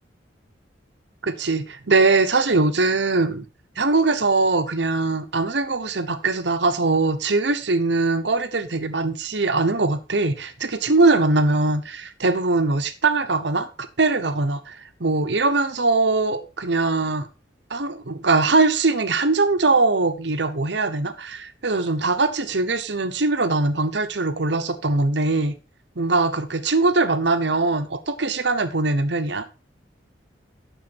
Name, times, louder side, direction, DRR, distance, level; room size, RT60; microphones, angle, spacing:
voice 1, 1.2-3.5 3.8-17.3 17.7-25.5 26.0-29.4, right 3 dB, 70° right, 1.0 m, -21 dB
9.7 x 6.5 x 4.2 m
head